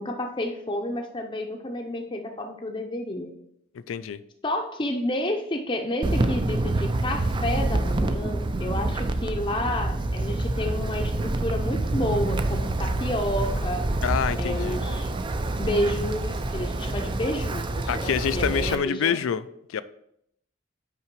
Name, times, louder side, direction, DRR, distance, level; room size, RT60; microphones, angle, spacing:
voice 1, 0.0-3.3 4.4-13.9 14.4-15.3 15.6-19.2, left 1 dB, 25° left, 3 dB, 0.6 m, -30 dB
voice 2, 3.9-4.2 14.0-14.8 17.9-19.8, left 7 dB, 85° left, 15 dB, 0.4 m, -27 dB
Wind, 6.0-18.8, right 2 dB, 25° right, 0.4 m, -27 dB
5.8 x 4.9 x 4.6 m, 0.74 s
head